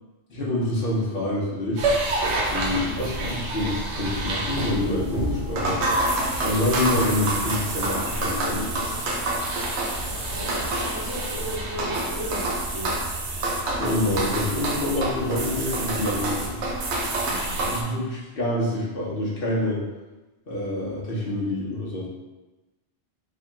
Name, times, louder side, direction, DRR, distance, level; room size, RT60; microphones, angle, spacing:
voice 1, 0.3-2.0 2.5-5.9 6.4-8.9 13.8-16.6 17.7-19.8 20.5-22.1, left 1 dB, 60° left, -5 dB, 1.0 m, -27 dB
sound 1, 1.6-7.8, left 1 dB, 30° left, 0.9 m, -41 dB
sound 2, 1.8-17.8, right 2 dB, 85° right, 1.0 m, -27 dB
sound 3, 5.4-13.4, left 1 dB, 15° left, 1.3 m, -43 dB
voice 2, 10.4-13.0 17.3-17.7, equal, 25° right, -8 dB, 0.7 m, -36 dB
3.5 x 2.8 x 3.5 m, 1.1 s
omnidirectional pair, 1.1 m